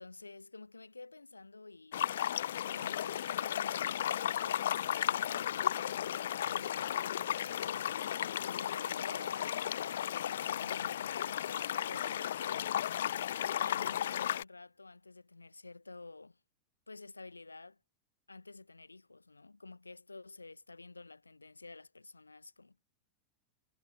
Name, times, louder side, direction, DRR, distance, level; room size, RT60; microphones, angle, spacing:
voice 1, 0.0-2.0 2.6-12.8 13.6-16.4 16.9-17.8 18.3-22.8, left 3 dB, 80° left, 1.6 m, -51 dB
sound 1, 1.9-14.4, left 11 dB, 60° left, 1.0 m, -34 dB
figure-of-eight pair, 90°, 0 cm